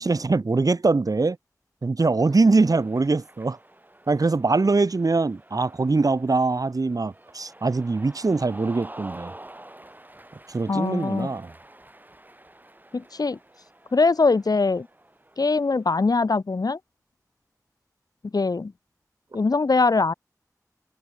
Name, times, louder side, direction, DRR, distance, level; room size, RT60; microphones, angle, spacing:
voice 1, 0.0-1.4 1.8-3.6 4.1-9.3 10.5-11.5, right 3 dB, 70° right, 1.2 m, -22 dB
Cheering, 2.5-16.0, right 1 dB, 30° right, 5.9 m, -48 dB
voice 2, 10.7-11.3 12.9-13.4 13.9-14.9 15.4-16.8 18.3-18.7 19.3-20.1, left 3 dB, 80° left, 1.2 m, -22 dB
wide cardioid pair, 50°, 6 cm